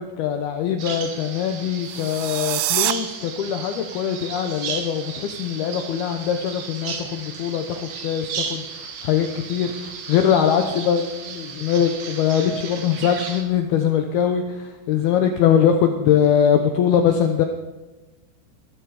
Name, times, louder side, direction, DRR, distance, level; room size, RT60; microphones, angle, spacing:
voice 1, 0.0-17.5, left 8 dB, 85° left, 5 dB, 2.2 m, -22 dB
Bird vocalization bird call bird song, 0.8-13.4, right 6 dB, 60° right, 2.1 m, -34 dB
sound 1, 1.8-2.9, right 18 dB, 80° right, 2.8 m, -25 dB
21.5 x 14.0 x 4.8 m, 1.2 s
omnidirectional pair, 5.7 m